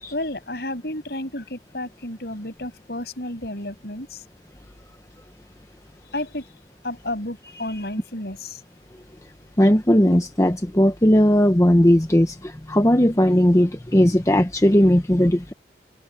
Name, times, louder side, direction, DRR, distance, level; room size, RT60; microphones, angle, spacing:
voice 1, 0.1-4.2 6.1-6.5 6.8-8.6, left 1 dB, 60° left, 7.5 m, -31 dB
voice 2, 9.6-15.5, equal, 15° left, 1.0 m, -17 dB
head